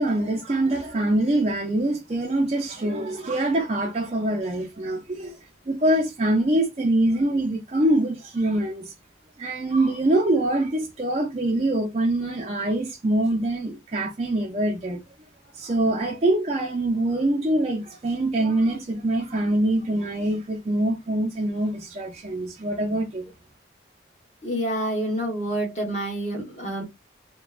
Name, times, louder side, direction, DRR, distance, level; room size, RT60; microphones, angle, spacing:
voice 1, 0.0-5.4 5.7-8.9 9.4-15.0 15.5-23.3, right 1 dB, 35° right, 0.5 m, -24 dB
voice 2, 24.4-26.8, right 1 dB, 35° left, 1.3 m, -28 dB
3.0 x 2.2 x 2.3 m
head